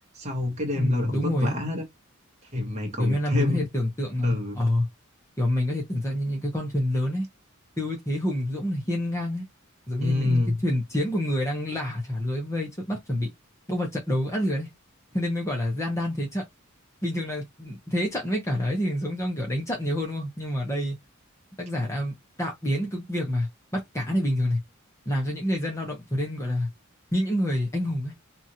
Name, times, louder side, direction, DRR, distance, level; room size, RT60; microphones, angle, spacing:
voice 1, 0.1-1.9 2.5-3.7 4.2-4.6 10.0-10.6, left 2 dB, 35° right, 0.9 m, -27 dB
voice 2, 0.7-1.6 3.0-4.9 5.4-7.3 7.8-9.4 9.9-13.3 13.7-14.7 15.1-16.4 17.0-21.0 21.6-24.6 25.1-26.7 27.1-28.1, left 1 dB, 15° left, 0.7 m, -27 dB
2.9 x 2.4 x 2.7 m
head